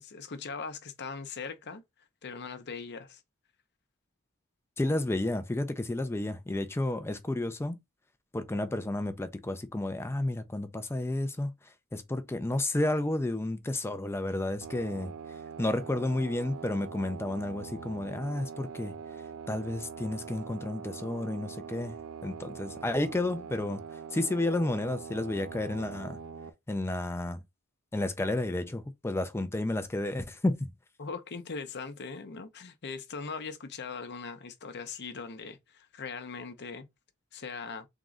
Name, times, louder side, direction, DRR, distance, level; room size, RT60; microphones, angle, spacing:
voice 1, 0.0-1.8 2.2-3.2 31.0-36.9 37.3-37.9, left 5 dB, 50° left, 0.7 m, -40 dB
voice 2, 4.8-7.8 8.3-15.1 15.6-18.9 19.5-21.9 22.2-23.8 24.1-26.2 26.7-27.4 27.9-30.7, left 2 dB, 10° left, 0.4 m, -31 dB
sound 1, 14.6-26.5, right 6 dB, 75° right, 0.6 m, -43 dB
3.6 x 3.0 x 3.7 m
head